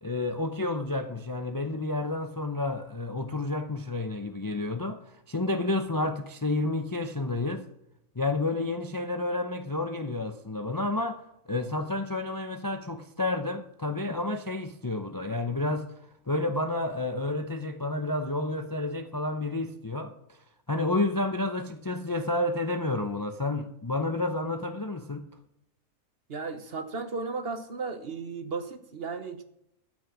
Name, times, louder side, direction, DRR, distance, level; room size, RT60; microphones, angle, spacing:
voice 1, 0.0-7.7 8.2-15.9 16.3-20.4 20.7-25.2, left 2 dB, 25° left, 0.5 m, -30 dB
voice 2, 26.3-29.4, right 4 dB, 45° right, 1.1 m, -35 dB
12.5 x 6.3 x 7.3 m
omnidirectional pair, 1.5 m